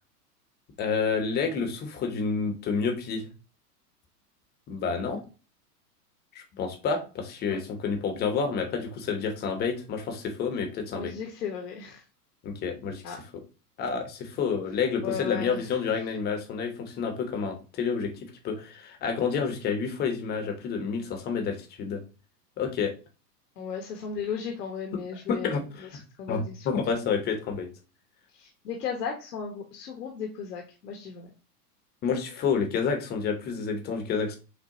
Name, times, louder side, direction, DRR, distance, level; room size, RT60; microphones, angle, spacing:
voice 1, 0.8-3.3 4.7-5.2 6.3-11.2 12.4-13.2 13.8-22.0 22.6-22.9 24.9-25.0 25.3-25.9 26.3-27.7 32.0-34.4, left 5 dB, 20° left, 5 dB, 0.8 m, -29 dB
voice 2, 10.9-12.0 13.0-13.2 15.0-15.7 23.6-25.6 25.9-27.0 28.3-31.3, left 6 dB, 75° left, 2 dB, 1.1 m, -36 dB
6.4 x 2.2 x 2.7 m, 0.33 s
hypercardioid pair, 120°, 48 cm